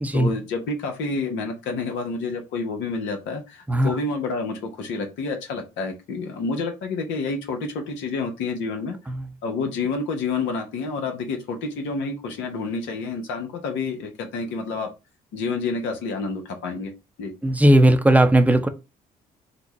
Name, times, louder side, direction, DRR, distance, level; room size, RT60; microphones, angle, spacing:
voice 1, 0.1-9.0 9.4-14.9 15.3-16.9 17.2-17.3, left 4 dB, 75° left, 0.8 m, -29 dB
voice 2, 3.7-4.0 9.1-9.3 17.4-18.7, right 1 dB, 10° right, 0.7 m, -17 dB
4.1 x 2.1 x 3.0 m
hypercardioid pair, 50°, 19 cm